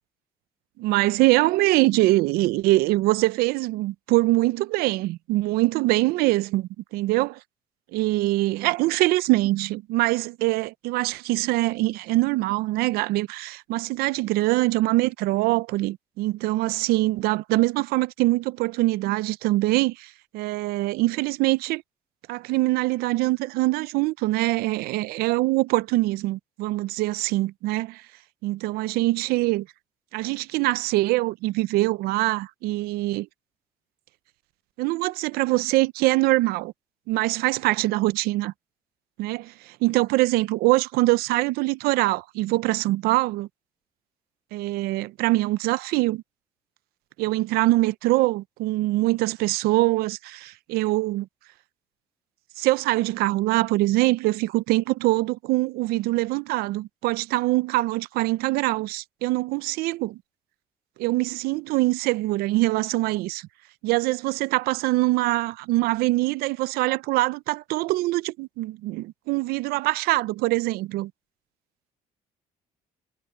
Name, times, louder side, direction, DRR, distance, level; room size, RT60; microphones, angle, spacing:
voice 1, 0.8-7.4 7.9-21.8 22.3-28.0 28.4-29.7 30.1-33.3 34.8-36.7 37.1-38.5 39.2-43.5 44.5-46.2 47.2-51.3 52.6-60.2 61.0-63.5 63.8-71.1, right 19 dB, 85° right, 0.6 m, -23 dB
supercardioid pair, 75°, 16 cm